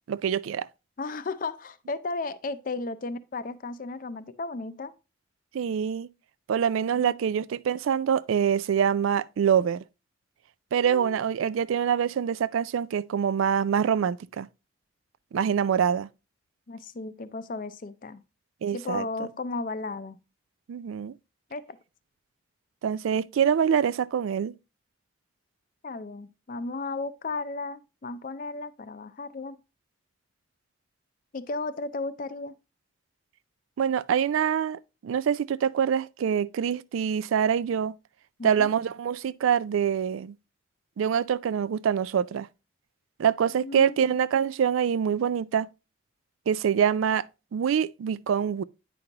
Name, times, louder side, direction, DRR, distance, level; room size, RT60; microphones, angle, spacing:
voice 1, 0.1-0.7 5.5-6.1 6.5-9.8 10.7-14.5 15.3-16.1 18.6-19.3 20.7-21.1 22.8-24.5 33.8-37.9 38.4-40.3 41.0-42.5 43.2-45.7 46.5-47.3 47.5-48.6, right 8 dB, 90° right, 0.3 m, -25 dB
voice 2, 1.0-4.9 7.0-7.1 10.7-11.2 16.7-18.2 18.7-20.2 21.5-21.8 25.8-29.6 31.3-32.5 38.4-38.7 43.5-44.2, left 3 dB, 45° left, 0.5 m, -35 dB
9.1 x 5.2 x 2.8 m
head